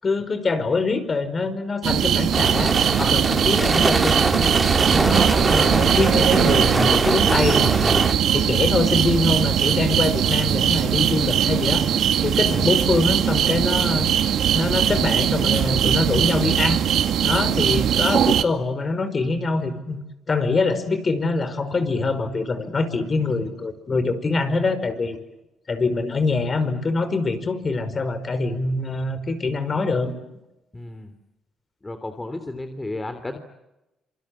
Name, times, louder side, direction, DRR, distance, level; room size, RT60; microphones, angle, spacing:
voice 1, 0.0-4.5 4.9-8.0 8.3-11.9 12.2-14.1 14.5-16.8 17.2-20.0 20.3-25.2 25.7-30.2, left 3 dB, 35° left, 10 dB, 5.2 m, -24 dB
sound 1, 1.8-18.4, right 9 dB, 70° right, 2.1 m, -20 dB
sound 2, 2.3-8.1, right 2 dB, 20° right, 2.1 m, -23 dB
voice 2, 30.7-31.1 31.8-33.4, left 2 dB, 15° left, 8 dB, 3.2 m, -33 dB
27.0 x 25.5 x 8.6 m, 0.93 s
cardioid pair, 90°, 0 cm